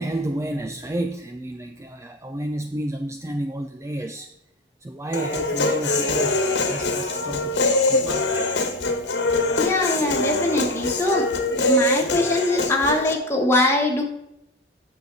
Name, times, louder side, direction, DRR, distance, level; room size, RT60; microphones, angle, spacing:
voice 1, 0.0-4.3 4.8-8.5, right 1 dB, 15° right, 7 dB, 0.4 m, -31 dB
Human voice, 5.1-13.1, left 2 dB, 75° left, 1.3 m, -23 dB
voice 2, 9.6-14.0, left 2 dB, 15° left, -1 dB, 1.6 m, -22 dB
9.7 x 6.7 x 4.1 m, 0.83 s
head